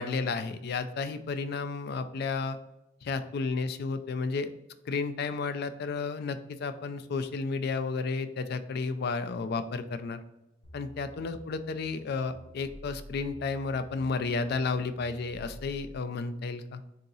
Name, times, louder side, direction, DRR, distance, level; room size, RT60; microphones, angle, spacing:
voice 1, 0.0-2.6 3.0-4.5 4.9-10.2 10.7-16.8, left 4 dB, 55° left, 10 dB, 0.3 m, -32 dB
sound 1, 10.6-16.0, equal, 85° left, 0.9 m, -50 dB
3.8 x 2.8 x 3.8 m, 0.91 s
head